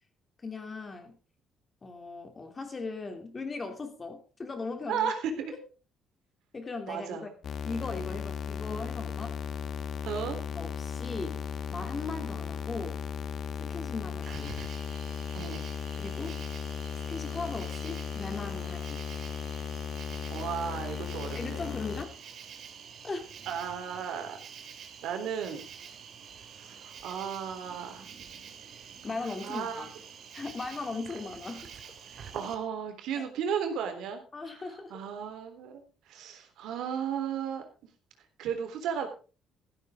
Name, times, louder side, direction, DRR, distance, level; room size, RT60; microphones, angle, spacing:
voice 1, 0.4-1.2 1.8-5.4 6.5-7.3 7.6-9.4 10.5-11.4 11.7-13.0 13.6-14.6 15.9-16.4 17.1-19.0 21.3-22.2 23.0-23.3 29.0-29.9 30.3-31.7 33.2-33.3 34.3-35.0, left 3 dB, 25° left, 6 dB, 2.8 m, -38 dB
voice 2, 4.9-5.5 6.9-7.3 10.0-10.4 15.3-15.7 20.3-21.6 23.5-24.4 25.0-25.6 26.6-28.1 29.4-29.9 32.3-34.6 34.9-37.6 38.4-39.1, right 7 dB, 75° right, 6 dB, 3.6 m, -34 dB
sound 1, 7.4-22.0, left 7 dB, 50° left, 1.3 m, -36 dB
Cricket, 14.2-32.5, right 7 dB, 50° right, 2.6 m, -47 dB
14.5 x 13.0 x 3.7 m, 0.34 s
cardioid pair, 140°, 0 cm